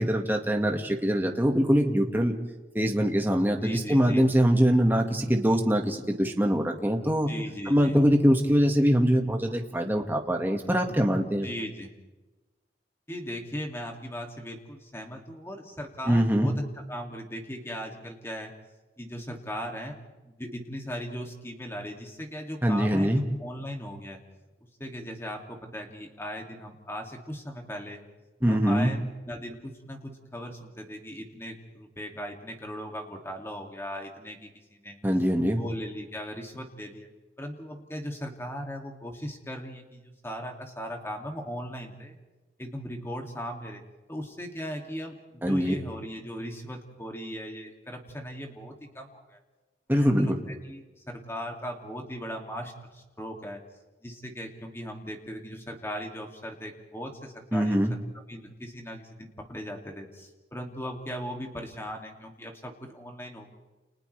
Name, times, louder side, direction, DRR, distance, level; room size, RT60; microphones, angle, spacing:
voice 1, 0.0-2.3 2.7-7.3 7.7-11.5 16.1-16.6 22.6-23.2 28.4-28.9 35.0-35.6 45.4-45.8 49.9-50.4 57.5-57.9, equal, 10° right, 2 dB, 1.9 m, -23 dB
voice 2, 3.6-4.3 7.3-8.0 11.4-11.9 13.1-18.5 19.0-20.0 20.2-24.2 24.6-28.0 28.5-35.0 35.6-37.1 37.4-42.2 42.6-43.8 44.1-49.4 50.0-53.6 54.0-58.0 58.3-63.5, equal, 15° left, 2 dB, 2.5 m, -38 dB
29.5 x 29.5 x 3.4 m, 1.2 s
head